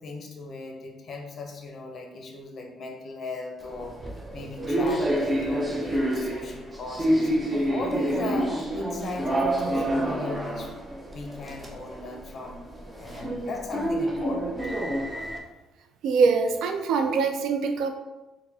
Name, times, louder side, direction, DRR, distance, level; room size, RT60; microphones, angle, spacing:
voice 1, 0.0-3.9 4.3-7.3 7.7-10.7 11.1-12.6 13.0-14.9, left 3 dB, 45° left, 2 dB, 0.6 m, -38 dB
sound 1, 3.6-15.4, right 1 dB, 20° right, 0.6 m, -28 dB
voice 2, 16.0-17.9, right 5 dB, 75° right, 5 dB, 0.4 m, -23 dB
4.1 x 2.1 x 2.7 m, 1.1 s
cardioid pair, 105°, 0 cm